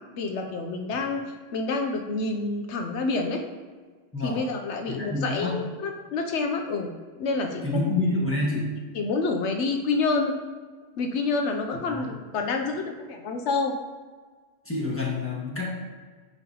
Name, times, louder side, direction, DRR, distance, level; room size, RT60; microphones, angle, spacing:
voice 1, 0.1-1.2 1.5-3.4 4.2-6.9 7.2-7.9 8.9-10.4 11.0-13.7, left 3 dB, 75° left, 4 dB, 0.9 m, -28 dB
voice 2, 4.9-5.5 7.6-8.7 11.8-12.1 14.6-15.7, left 2 dB, 10° left, -4 dB, 1.4 m, -27 dB
9.1 x 4.6 x 2.9 m, 1.5 s
omnidirectional pair, 1.2 m